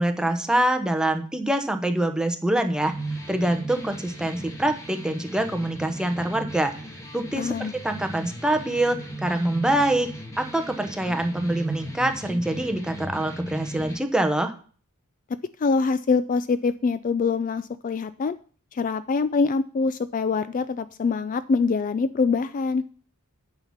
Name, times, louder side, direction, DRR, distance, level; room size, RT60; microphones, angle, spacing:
voice 1, 0.0-2.9 3.3-6.7 7.1-10.1 10.4-14.5, right 1 dB, 5° right, 6 dB, 0.9 m, -25 dB
sound 1, 2.8-14.0, right 1 dB, 15° left, 1.8 m, -37 dB
voice 2, 7.4-7.7 15.6-18.4 18.7-22.8, left 4 dB, 35° left, 14 dB, 0.3 m, -24 dB
8.9 x 5.8 x 7.2 m, 0.42 s
head